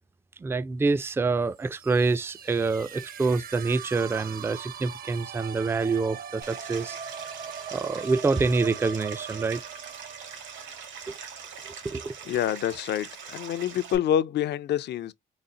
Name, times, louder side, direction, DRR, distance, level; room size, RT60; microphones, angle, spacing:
voice 1, 0.4-7.0 7.7-9.6 11.1-11.2 11.8-12.2, right 4 dB, 10° right, 0.3 m, -26 dB
sound 1, 1.5-11.3, right 8 dB, 50° right, 0.7 m, -41 dB
Stream, 6.4-14.0, right 6 dB, 75° right, 1.5 m, -42 dB
voice 2, 12.3-15.1, left 10 dB, 60° left, 0.4 m, -27 dB
4.0 x 2.0 x 3.7 m
cardioid pair, 90°, 20 cm